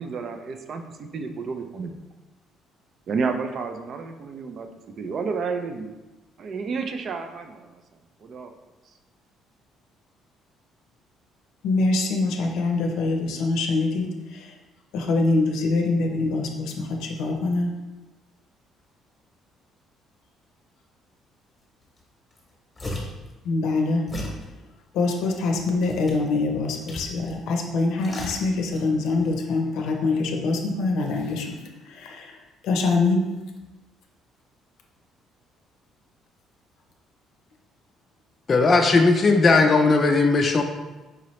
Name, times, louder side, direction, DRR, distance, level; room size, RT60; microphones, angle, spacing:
voice 1, 0.0-2.0 3.1-5.9 6.4-7.8 8.2-8.5, right 5 dB, 50° right, 7 dB, 0.4 m, -31 dB
voice 2, 11.6-14.5 14.9-17.7 23.4-24.0 24.9-31.6 31.8-32.4 32.6-33.3, left 3 dB, 80° left, 2 dB, 0.6 m, -24 dB
sound 1, 22.0-22.1 22.3-23.3 24.1-24.4 25.1-26.3 26.9-27.4 27.7-28.9 29.2-29.3, left 1 dB, 15° left, 1.0 m, -36 dB
voice 3, 38.5-40.6, left 3 dB, 30° left, 3 dB, 0.4 m, -17 dB
4.9 x 2.9 x 3.1 m, 1.1 s
cardioid pair, 130°, 0 cm